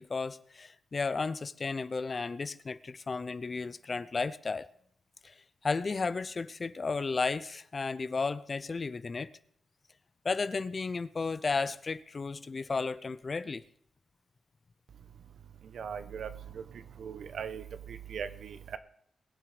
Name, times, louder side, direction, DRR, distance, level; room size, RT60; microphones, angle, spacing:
voice 1, 0.0-4.7 5.2-5.3 5.6-9.3 10.2-13.6, left 4 dB, 45° left, 0.7 m, -33 dB
voice 2, 15.7-16.3 17.0-17.6 18.1-18.8, right 7 dB, 75° right, 0.9 m, -38 dB
21.0 x 7.6 x 5.0 m
cardioid pair, 65°, 0 cm